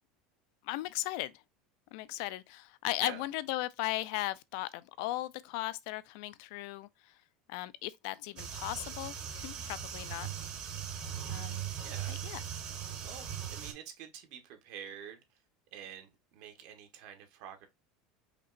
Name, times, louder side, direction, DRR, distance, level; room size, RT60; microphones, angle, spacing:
voice 1, 0.6-1.4 1.9-7.1 7.5-10.3 11.3-11.7 12.1-12.4, left 17 dB, 60° left, 0.4 m, -37 dB
sound 1, 8.4-13.7, right 9 dB, 35° right, 0.9 m, -39 dB
voice 2, 11.8-12.2 13.0-15.4 15.7-17.7, right 8 dB, 60° right, 1.1 m, -48 dB
5.1 x 2.9 x 2.5 m
cardioid pair, 170°, 3 cm